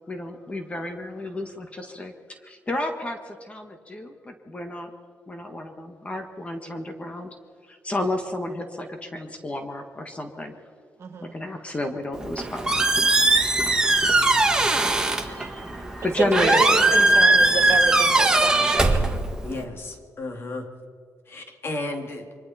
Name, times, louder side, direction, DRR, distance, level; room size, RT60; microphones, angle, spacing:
voice 1, 0.1-2.1 2.4-4.9 5.3-7.3 7.7-10.5 11.2-12.8 13.4-13.5 14.3-17.5, left 1 dB, 20° left, 5 dB, 1.6 m, -32 dB
voice 2, 11.0-11.3 16.2-19.0, right 5 dB, 50° right, 4 dB, 2.7 m, -29 dB
Squeak, 12.1-19.6, right 2 dB, 10° right, 1.6 m, -20 dB
voice 3, 19.4-20.7 21.3-22.3, left 2 dB, 45° left, 4 dB, 2.5 m, -33 dB
29.0 x 24.0 x 4.3 m, 2.1 s
wide cardioid pair, 145°, 6 cm